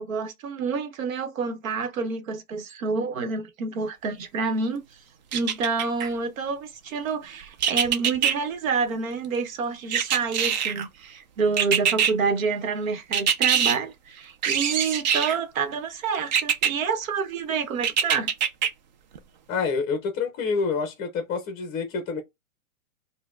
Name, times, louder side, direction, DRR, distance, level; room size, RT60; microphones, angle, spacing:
voice 1, 0.0-4.8 5.3-18.3, right 5 dB, 65° right, 1.1 m, -28 dB
sound 1, 5.3-6.1 7.6-8.3 9.9-10.9 11.6-12.1 13.1-13.8 14.4-15.4 16.3-16.7 17.8-18.7 19.2-19.3, right 8 dB, 35° right, 0.4 m, -23 dB
voice 2, 19.5-22.2, left 5 dB, 20° left, 0.6 m, -27 dB
4.1 x 2.2 x 2.3 m
hypercardioid pair, 130°, 43 cm